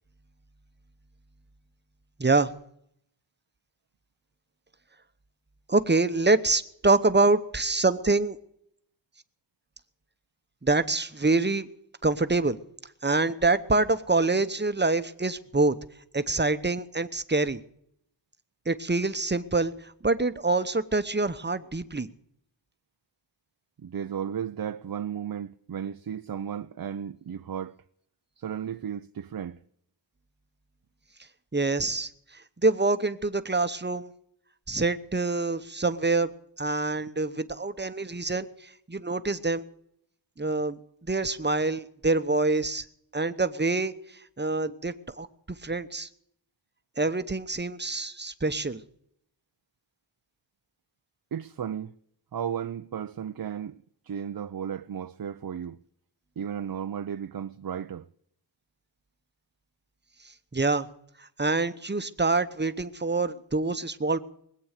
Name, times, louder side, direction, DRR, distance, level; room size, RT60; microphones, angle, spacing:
voice 1, 5.7-8.4 10.6-11.7 12.0-12.6 13.0-15.8 16.1-17.6 18.7-19.7 20.0-22.1 31.5-32.1 32.6-34.1 34.7-36.3 36.6-38.5 38.9-39.6 40.4-40.8 41.0-42.8 43.1-43.9 44.4-46.1 47.0-48.8 60.5-60.9 61.4-64.2, right 3 dB, 25° right, 0.9 m, -25 dB
voice 2, 23.8-27.7 28.4-29.6 51.3-51.9 52.3-53.7 54.0-55.8 56.4-58.0, right 8 dB, 50° right, 0.6 m, -34 dB
21.0 x 8.7 x 6.6 m
wide cardioid pair, 75°, 46 cm